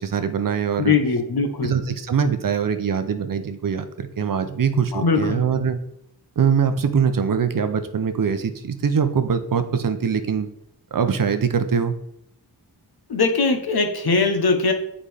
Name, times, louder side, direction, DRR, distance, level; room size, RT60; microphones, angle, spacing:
voice 1, 0.0-0.9 1.6-5.8 6.4-10.5 10.9-12.0, right 6 dB, 55° right, 9 dB, 0.6 m, -22 dB
voice 2, 0.8-1.7 4.9-5.4 13.1-14.7, left 4 dB, 65° left, 6 dB, 1.0 m, -20 dB
7.5 x 4.9 x 3.4 m, 0.75 s
wide cardioid pair, 90°, 41 cm